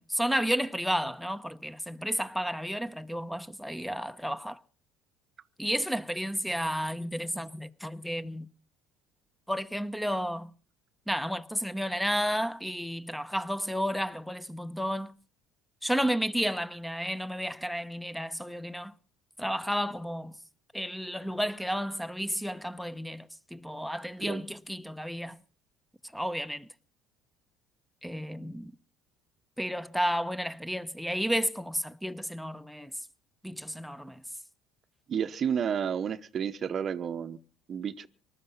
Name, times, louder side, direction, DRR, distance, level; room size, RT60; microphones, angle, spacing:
voice 1, 0.0-4.6 5.6-8.5 9.5-10.5 11.1-15.2 15.8-18.9 19.4-20.3 20.7-25.4 26.1-26.7 28.0-28.7 29.6-32.9 33.4-34.2, equal, ahead, 0.9 m, -32 dB
voice 2, 35.1-37.4 37.7-38.1, right 8 dB, 45° right, 0.8 m, -31 dB
19.5 x 12.5 x 5.6 m
hypercardioid pair, 75°, 0 cm